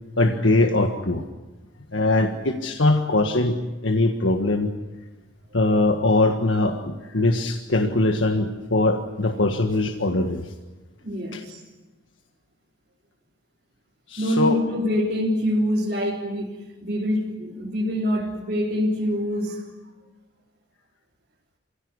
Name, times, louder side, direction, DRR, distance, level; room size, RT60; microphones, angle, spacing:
voice 1, 0.2-1.2 1.9-4.7 5.5-10.5 11.3-11.4 14.1-14.6, left 2 dB, 85° left, 4 dB, 1.6 m, -21 dB
voice 2, 11.0-11.6 14.2-19.7, equal, 45° right, -4 dB, 3.6 m, -25 dB
28.5 x 17.0 x 9.7 m, 1.2 s
head